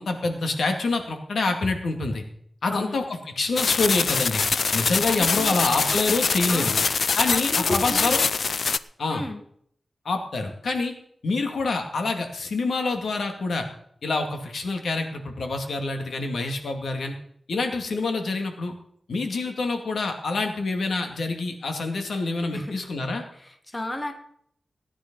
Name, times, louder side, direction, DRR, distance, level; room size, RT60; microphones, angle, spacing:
voice 1, 0.0-2.2 2.6-4.4 4.7-6.8 7.1-8.2 9.0-9.2 10.0-10.9 11.2-13.7 14.0-17.2 17.5-18.7 19.1-23.2, left 3 dB, 80° left, 4 dB, 2.5 m, -26 dB
voice 2, 2.7-3.0 5.1-5.7 6.5-6.9 7.3-8.1 9.1-9.4 22.5-22.8 23.3-24.1, left 1 dB, 15° left, 6 dB, 1.6 m, -33 dB
sound 1, 3.6-8.8, left 5 dB, 65° left, 0.5 m, -24 dB
18.0 x 10.5 x 5.5 m, 0.67 s
wide cardioid pair, 145°, 0 cm